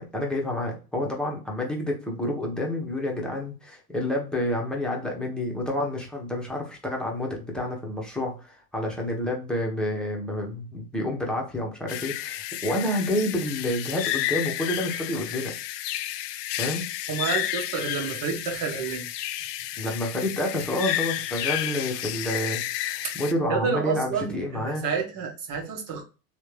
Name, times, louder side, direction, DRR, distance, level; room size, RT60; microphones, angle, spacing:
voice 1, 0.0-15.5 16.6-16.8 19.8-24.8, left 1 dB, ahead, -1 dB, 1.2 m, -29 dB
sound 1, 11.9-23.3, left 13 dB, 80° left, 0.5 m, -31 dB
voice 2, 17.1-19.1 23.0-23.1 23.5-26.0, right 6 dB, 45° right, 1 dB, 1.5 m, -29 dB
3.3 x 3.2 x 3.3 m, 0.33 s
hypercardioid pair, 105°, 47 cm